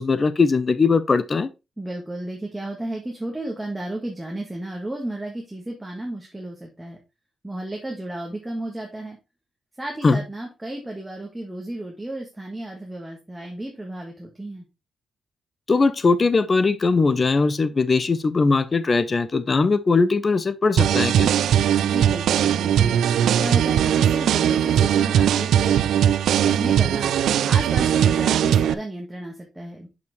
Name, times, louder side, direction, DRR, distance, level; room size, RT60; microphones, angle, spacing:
voice 1, 0.0-1.5 10.0-10.2 15.7-21.3, left 4 dB, 30° left, 0.7 m, -20 dB
voice 2, 1.8-7.0 7.4-9.2 9.8-14.7 21.8-23.0 23.4-25.8 26.4-27.1 27.4-29.9, right 1 dB, 10° right, 1.5 m, -33 dB
sound 1, 20.8-28.7, right 9 dB, 85° right, 0.4 m, -19 dB
6.8 x 5.7 x 3.1 m
cardioid pair, 120°, 0 cm